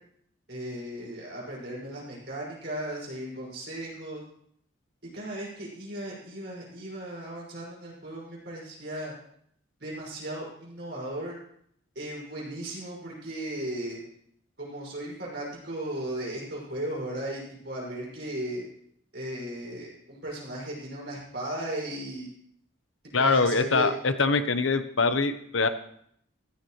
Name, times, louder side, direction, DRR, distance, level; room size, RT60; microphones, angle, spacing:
voice 1, 0.5-4.2 5.1-9.1 9.8-11.4 11.9-14.0 14.6-18.7 19.1-22.3 23.0-23.9, right 1 dB, 55° right, -4 dB, 6.0 m, -36 dB
voice 2, 23.1-25.7, left 3 dB, 75° left, 9 dB, 1.1 m, -24 dB
15.5 x 13.0 x 3.2 m, 0.68 s
head